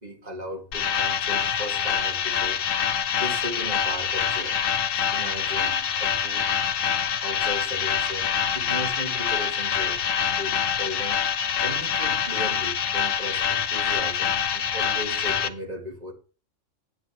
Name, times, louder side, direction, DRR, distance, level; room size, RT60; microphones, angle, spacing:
voice 1, 0.0-2.6 3.2-4.6 5.1-6.4 7.2-10.0 10.3-11.2 11.6-16.1, equal, 30° right, 2.3 m, -36 dB
sound 1, 0.7-15.5, left 7 dB, 90° left, 1.2 m, -25 dB
10.5 x 9.9 x 3.1 m
omnidirectional pair, 1.3 m